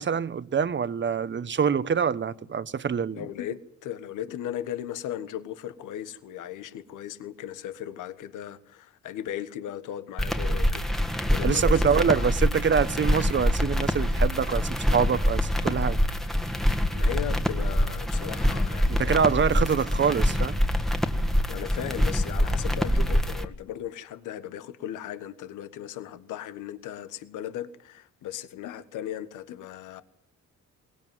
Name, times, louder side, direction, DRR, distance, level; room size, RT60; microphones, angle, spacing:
voice 1, 0.0-3.2 11.4-16.0 18.9-20.6, right 6 dB, 40° right, 1.1 m, -25 dB
voice 2, 3.1-10.8 11.3-12.2 16.9-19.1 21.5-30.0, left 11 dB, 85° left, 1.4 m, -37 dB
sound 1, 10.2-23.4, equal, ahead, 1.6 m, -25 dB
22.5 x 19.0 x 9.3 m
cardioid pair, 90°, 30 cm